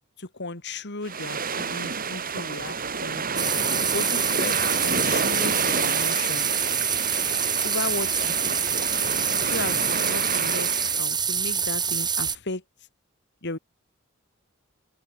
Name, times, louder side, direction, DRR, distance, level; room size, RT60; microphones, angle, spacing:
voice 1, 0.2-3.2 3.9-6.5 7.6-8.6 9.4-12.6 13.4-13.6, left 3 dB, 55° left, 3.0 m, -35 dB
sound 1, 1.0-11.0, right 5 dB, 45° right, 4.9 m, -29 dB
sound 2, 3.4-12.4, right 6 dB, 20° right, 3.0 m, -26 dB
open air
head